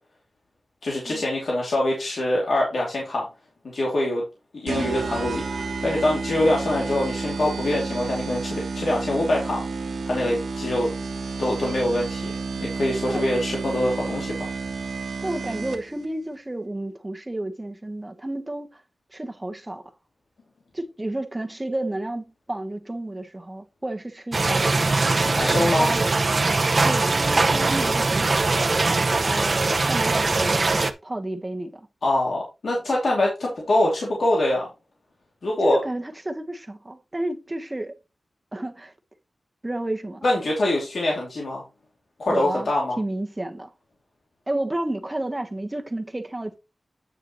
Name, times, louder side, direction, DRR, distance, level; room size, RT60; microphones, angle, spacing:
voice 1, 0.8-3.2 3.6-4.2 4.6-9.6 10.0-10.9 11.4-14.5 25.2-25.9 32.0-34.7 35.4-35.8 40.2-41.6 42.2-43.0, left 1 dB, 75° left, 2.7 m, -24 dB
sound 1, 4.7-16.0, right 4 dB, 90° right, 1.3 m, -31 dB
voice 2, 15.2-18.8 19.1-19.8 20.7-25.1 25.6-26.0 26.8-28.3 29.2-31.9 35.6-37.9 38.5-38.9 39.6-40.2 42.3-42.7 43.0-43.7 44.5-46.5, right 1 dB, 20° right, 1.2 m, -31 dB
sound 2, 24.3-30.9, right 3 dB, 45° right, 0.9 m, -21 dB
9.2 x 6.6 x 3.1 m
wide cardioid pair, 85°, 0 cm